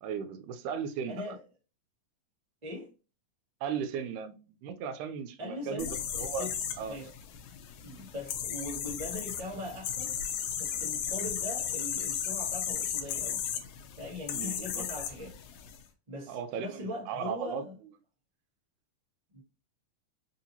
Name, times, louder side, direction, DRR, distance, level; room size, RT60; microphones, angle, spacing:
voice 1, 0.0-1.4 3.6-4.4 4.6-6.5 6.8-7.0 14.3-14.9 16.3-17.6, right 7 dB, 80° right, 2.0 m, -36 dB
voice 2, 1.1-1.4 2.6-2.9 5.4-6.5 6.8-7.1 7.8-10.2 10.6-13.4 14.0-15.3 16.1-17.7 19.3-19.4, left 1 dB, 60° right, 0.4 m, -41 dB
sound 1, 5.8-15.8, left 8 dB, 75° left, 1.7 m, -35 dB
4.9 x 2.8 x 2.7 m
omnidirectional pair, 3.6 m